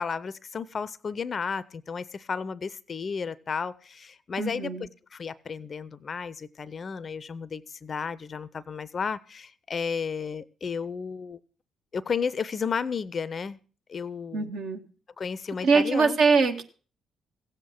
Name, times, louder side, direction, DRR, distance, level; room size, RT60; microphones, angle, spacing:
voice 1, 0.0-4.7 5.1-11.4 11.9-13.6 13.9-14.5 15.2-16.2, left 6 dB, 40° left, 0.5 m, -33 dB
voice 2, 4.4-4.9 14.3-14.8 15.6-16.6, right 4 dB, 55° right, 1.3 m, -23 dB
16.0 x 8.1 x 5.9 m
figure-of-eight pair, 40°, 0 cm